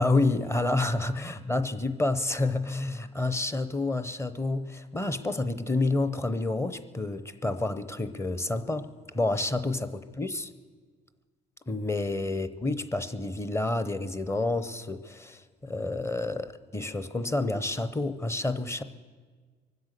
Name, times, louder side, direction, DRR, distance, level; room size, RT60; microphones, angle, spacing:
voice 1, 0.0-8.9 9.1-10.5 11.7-18.8, left 2 dB, 15° left, 12 dB, 0.8 m, -29 dB
23.5 x 8.0 x 6.7 m, 1.5 s
cardioid pair, 110°, 17 cm